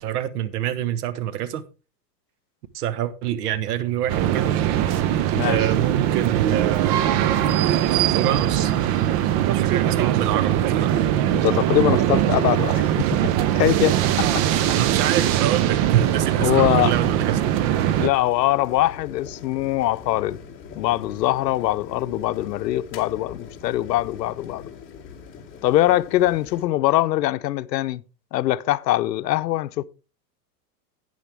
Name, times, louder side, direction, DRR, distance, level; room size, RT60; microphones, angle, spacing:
voice 1, 0.0-1.6 2.7-4.6 5.5-7.0 8.1-8.7 9.4-11.0 14.4-17.4, right 11 dB, 65° right, 1.3 m, -27 dB
sound 1, 4.1-18.1, right 11 dB, 30° right, 0.5 m, -21 dB
voice 2, 11.3-13.3 13.6-14.8 16.4-16.9 18.0-20.4 20.7-24.7 25.6-28.0 28.3-29.8, left 15 dB, 80° left, 0.9 m, -22 dB
sound 2, 15.8-26.7, left 6 dB, 25° left, 3.0 m, -42 dB
11.5 x 9.3 x 3.4 m
supercardioid pair, 145°, 49 cm